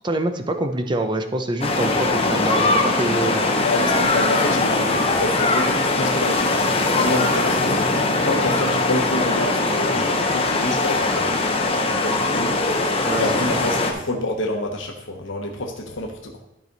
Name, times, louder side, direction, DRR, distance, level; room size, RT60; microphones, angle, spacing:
voice 1, 0.0-3.5 13.1-13.2 13.5-13.9, right 2 dB, 25° right, 6 dB, 0.6 m, -25 dB
sound 1, 1.6-13.9, left 2 dB, 30° left, 0.9 m, -21 dB
voice 2, 3.6-7.8 8.2-11.4 11.9-12.6 13.2-16.4, left 1 dB, 75° left, 1 dB, 1.0 m, -27 dB
12.0 x 4.9 x 4.0 m, 0.87 s
head